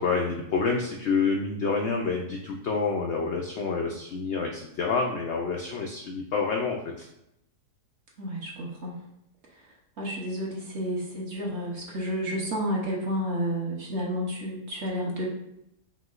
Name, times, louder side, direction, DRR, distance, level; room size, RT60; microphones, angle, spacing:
voice 1, 0.0-7.1, left 4 dB, 85° left, 0 dB, 0.6 m, -28 dB
voice 2, 8.2-8.9 10.0-15.3, equal, 55° right, -2 dB, 1.0 m, -31 dB
5.5 x 2.9 x 2.4 m, 0.81 s
omnidirectional pair, 1.7 m